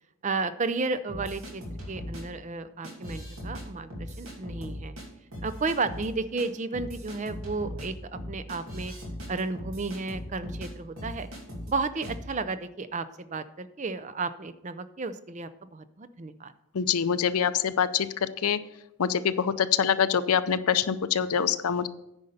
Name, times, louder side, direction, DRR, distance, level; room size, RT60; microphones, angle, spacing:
voice 1, 0.2-5.0 5.4-8.9 9.3-11.3 11.7-16.5, right 3 dB, 30° right, 12 dB, 0.5 m, -33 dB
sound 1, 1.1-2.2 2.8-3.6 3.9-5.0 5.3-6.1 6.4-6.5 6.7-10.7 11.0-11.7 12.0-12.2, equal, 65° right, 2.5 m, -39 dB
voice 2, 16.7-18.6 19.0-21.9, left 7 dB, 80° left, 13 dB, 0.5 m, -25 dB
9.6 x 5.4 x 6.5 m, 0.86 s
head